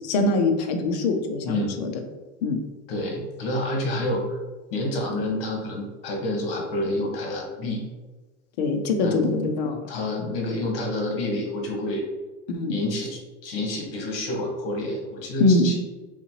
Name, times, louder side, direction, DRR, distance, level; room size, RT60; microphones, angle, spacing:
voice 1, 0.0-1.9 2.4-2.6 8.6-9.8 12.5-12.8 15.4-15.7, left 2 dB, 35° left, 5 dB, 0.5 m, -23 dB
voice 2, 1.4-1.8 2.9-4.4 4.7-7.8 9.0-9.5 9.9-12.0 12.7-15.7, left 1 dB, 55° left, 1 dB, 1.3 m, -28 dB
4.2 x 3.8 x 2.9 m, 1.2 s
supercardioid pair, 170°, 36 cm